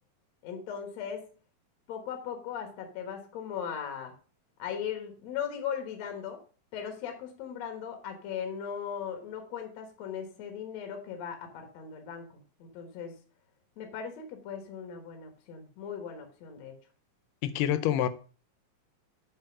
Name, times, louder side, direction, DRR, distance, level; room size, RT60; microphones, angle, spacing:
voice 1, 0.4-1.3 1.9-4.1 4.6-6.4 6.7-13.1 13.8-16.8, left 8 dB, 60° left, 2.2 m, -38 dB
voice 2, 17.4-18.1, left 11 dB, 80° left, 2.1 m, -26 dB
7.7 x 4.6 x 6.1 m
omnidirectional pair, 4.2 m